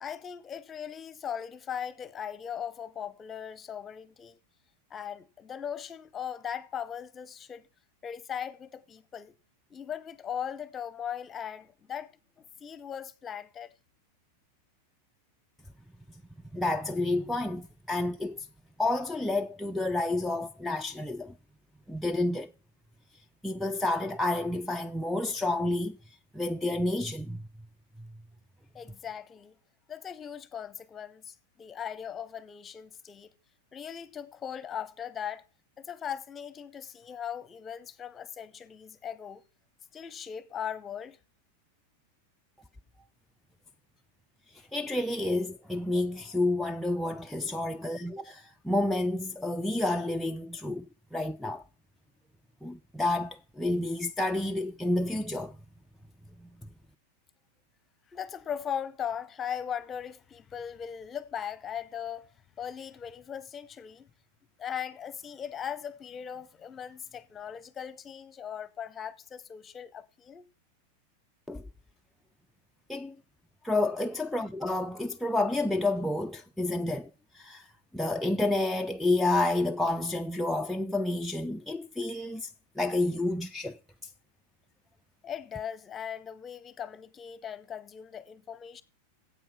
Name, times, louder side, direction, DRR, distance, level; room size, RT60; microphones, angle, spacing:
voice 1, 0.0-4.4 4.9-7.7 8.0-9.3 9.7-13.7 28.7-29.6 29.9-33.3 33.7-35.4 35.8-39.4 39.9-41.2 58.1-62.3 62.6-64.1 64.6-70.4 85.2-88.8, left 8 dB, 20° left, 0.9 m, -39 dB
voice 2, 16.5-18.5 18.8-21.3 21.9-22.5 23.4-26.0 26.3-27.4 44.5-50.9 51.1-51.6 52.6-55.6 56.4-56.5 71.5-71.7 72.9-73.2 73.6-82.5 82.8-84.1, left 2 dB, 5° left, 0.4 m, -30 dB
8.8 x 8.2 x 5.7 m
figure-of-eight pair, 90°, 0 cm